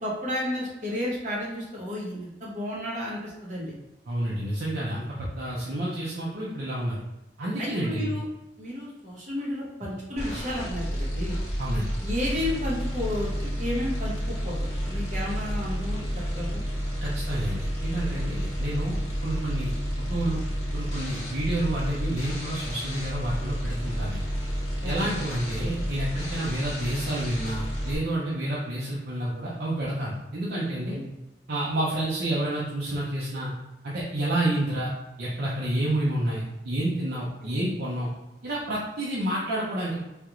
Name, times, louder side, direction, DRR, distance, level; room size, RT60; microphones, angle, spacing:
voice 1, 0.0-3.7 7.6-8.2 8.6-11.4 12.0-16.6 24.8-25.1 30.9-31.1 37.4-37.5, left 1 dB, 45° right, -6 dB, 1.2 m, -32 dB
voice 2, 4.1-7.0 7.4-8.1 11.6-11.9 17.0-19.7 20.0-20.4 20.7-24.2 24.8-31.0 31.5-33.5 33.8-34.9 35.2-38.1 38.4-40.0, right 1 dB, 60° right, -6 dB, 0.6 m, -29 dB
sound 1, 10.2-28.0, equal, 40° left, 1.1 m, -31 dB
3.4 x 2.4 x 3.0 m, 0.98 s
head